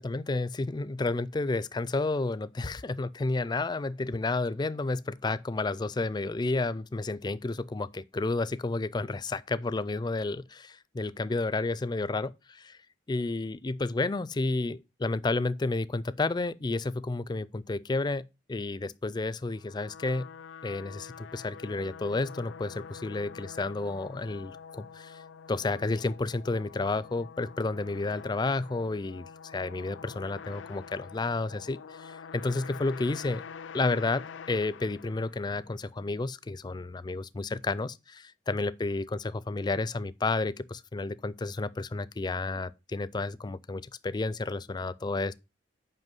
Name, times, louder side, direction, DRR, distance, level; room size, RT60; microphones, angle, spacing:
voice 1, 0.0-12.8 13.1-20.3 20.6-25.2 25.5-33.4 33.7-45.3, left 3 dB, 25° left, 0.4 m, -31 dB
sound 1, 19.4-35.7, left 6 dB, 90° left, 0.5 m, -46 dB
8.1 x 5.5 x 5.4 m
head